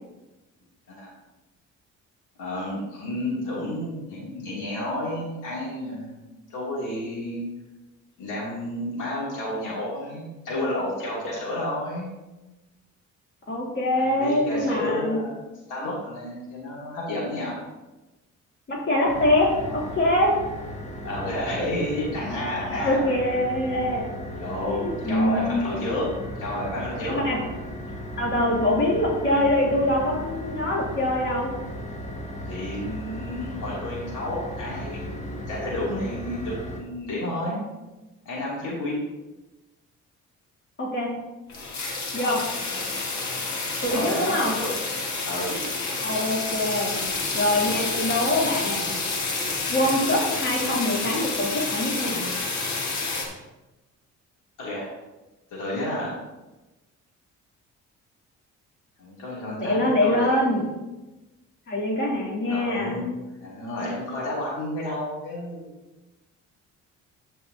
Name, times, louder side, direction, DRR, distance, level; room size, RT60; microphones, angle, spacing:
voice 1, 2.4-6.2 6.5-7.5 8.2-12.1 13.9-15.4 15.7-17.6 19.6-19.8 21.0-23.5 24.3-26.1 26.4-27.2 32.4-37.6 38.2-39.0 42.2-42.4 42.7-42.9 43.9-44.7 45.2-45.6 54.6-54.9 55.5-56.2 59.0-60.3 62.5-65.7, left 1 dB, 80° left, -5 dB, 2.8 m, -31 dB
voice 2, 13.5-15.2 18.7-20.4 22.7-24.1 24.6-25.6 27.0-27.4 28.2-31.5 40.8-41.1 42.1-42.4 43.8-44.5 46.0-47.0 47.3-48.9 49.7-52.2 59.6-60.6 61.7-63.0, left 1 dB, 40° left, -4 dB, 2.9 m, -24 dB
sound 1, 19.1-36.8, equal, 25° left, 1.8 m, -36 dB
sound 2, 41.5-53.3, left 3 dB, 65° left, 1.9 m, -29 dB
13.5 x 5.5 x 2.8 m, 1.1 s
cardioid pair, 90°, 30 cm